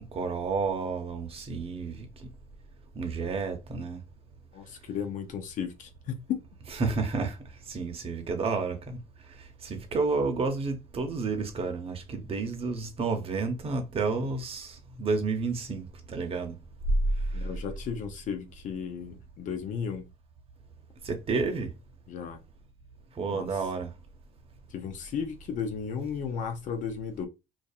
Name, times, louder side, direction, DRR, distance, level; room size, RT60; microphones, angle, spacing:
voice 1, 0.1-2.3 2.9-4.0 6.8-7.4 7.7-9.0 9.6-16.5 21.0-21.7 23.2-23.9, right 4 dB, 40° right, 0.8 m, -30 dB
voice 2, 4.5-6.4 17.3-20.1 22.1-22.4 23.3-23.5 24.7-27.3, left 7 dB, 55° left, 0.6 m, -34 dB
2.6 x 2.3 x 2.3 m
supercardioid pair, 75°, 15 cm